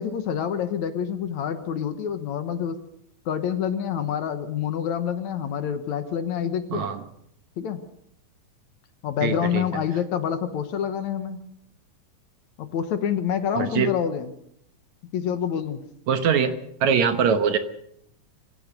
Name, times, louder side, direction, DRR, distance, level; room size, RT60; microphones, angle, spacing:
voice 1, 0.0-2.8 3.3-7.0 7.6-7.8 9.0-11.4 12.6-14.3 15.1-15.8, left 8 dB, 65° left, 10 dB, 2.3 m, -27 dB
voice 2, 6.7-7.0 9.2-9.7 13.5-13.9 16.1-16.5 16.8-17.6, right 7 dB, 65° right, 9 dB, 2.2 m, -22 dB
25.0 x 16.0 x 6.7 m, 0.72 s
omnidirectional pair, 4.0 m